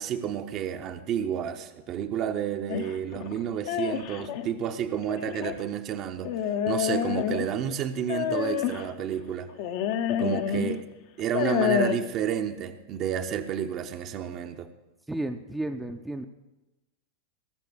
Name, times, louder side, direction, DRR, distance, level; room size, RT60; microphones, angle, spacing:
voice 1, 0.0-6.3 6.7-9.5 10.2-10.8 11.2-14.7, right 9 dB, 35° right, 7 dB, 0.9 m, -30 dB
sound 1, 2.7-4.5 5.1-5.6 6.2-7.6 8.1-8.9 9.6-10.8 11.2-11.9, left 9 dB, 50° left, 1.0 m, -28 dB
voice 2, 15.1-16.3, right 1 dB, 5° right, 5 dB, 0.7 m, -32 dB
18.0 x 6.8 x 6.5 m, 1.0 s
figure-of-eight pair, 90°, 0 cm